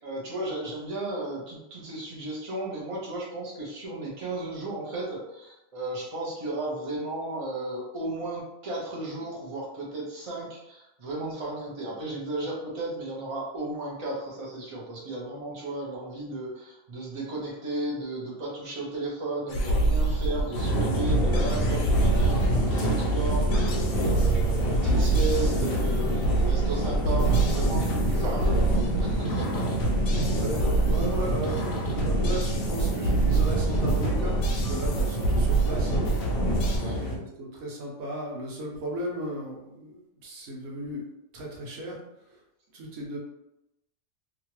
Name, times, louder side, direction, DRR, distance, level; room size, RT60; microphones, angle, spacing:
voice 1, 0.0-29.7 36.8-37.0, right 2 dB, 30° right, -4 dB, 0.7 m, -34 dB
sound 1, 19.5-36.8, right 2 dB, 75° left, 1.1 m, -26 dB
sound 2, 20.5-37.2, right 1 dB, 55° left, 0.7 m, -28 dB
voice 2, 30.4-35.9 36.8-41.1 41.3-42.0 42.7-43.2, right 1 dB, 85° right, -2 dB, 1.2 m, -35 dB
2.9 x 2.4 x 2.9 m, 0.88 s
omnidirectional pair, 1.4 m